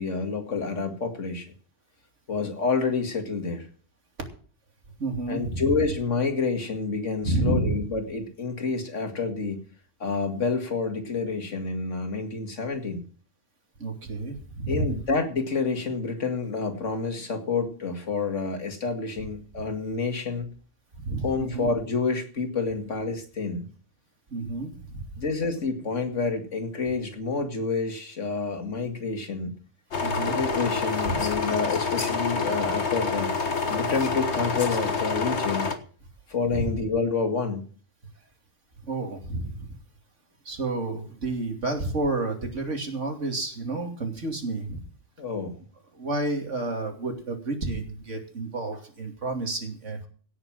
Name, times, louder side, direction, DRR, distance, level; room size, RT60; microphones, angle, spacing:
voice 1, 0.0-1.5 2.3-3.7 5.3-9.6 10.0-13.0 14.7-20.5 21.2-23.7 25.2-29.5 30.3-33.3 33.7-35.7 36.3-37.6 45.2-45.6, left 4 dB, 90° left, 6 dB, 2.5 m, -28 dB
voice 2, 5.0-5.8 7.2-7.8 13.8-14.9 19.2-19.3 20.9-21.7 24.3-25.2 30.0-30.4 31.0-31.2 36.5-36.7 38.8-39.7 40.4-44.8 45.9-50.1, right 2 dB, 80° right, 3 dB, 3.1 m, -30 dB
sound 1, 29.9-35.8, left 4 dB, 65° left, 1.8 m, -27 dB
17.0 x 6.6 x 7.4 m, 0.44 s
omnidirectional pair, 1.2 m